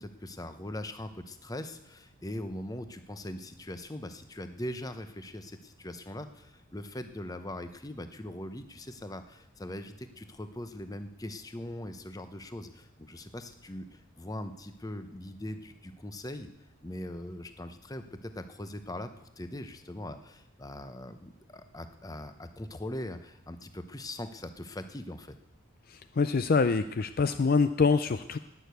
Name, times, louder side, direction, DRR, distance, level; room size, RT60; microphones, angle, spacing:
voice 1, 0.0-16.5 16.8-25.4, left 1 dB, 15° left, 9 dB, 0.8 m, -41 dB
voice 2, 25.9-28.4, left 4 dB, 45° left, 11 dB, 0.4 m, -25 dB
19.5 x 6.7 x 8.2 m, 0.88 s
head